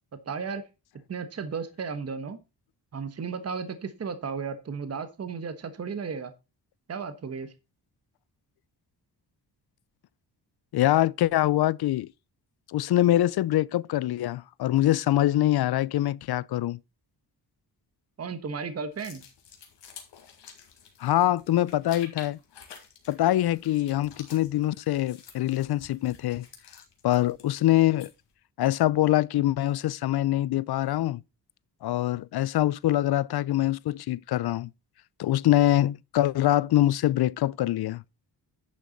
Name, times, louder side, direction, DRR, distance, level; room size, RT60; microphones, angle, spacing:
voice 1, 0.3-0.6 1.1-2.4 2.9-6.3 6.9-7.5 18.2-19.2, right 5 dB, 35° right, 1.2 m, -34 dB
voice 2, 10.7-12.1 12.7-16.8 21.0-22.4 23.1-26.5 27.0-28.1 28.6-31.2 31.8-34.7 35.2-38.0, left 14 dB, 65° left, 0.5 m, -24 dB
sound 1, 18.9-28.3, left 7 dB, 85° left, 2.7 m, -50 dB
11.0 x 6.8 x 4.0 m
wide cardioid pair, 130°, 41 cm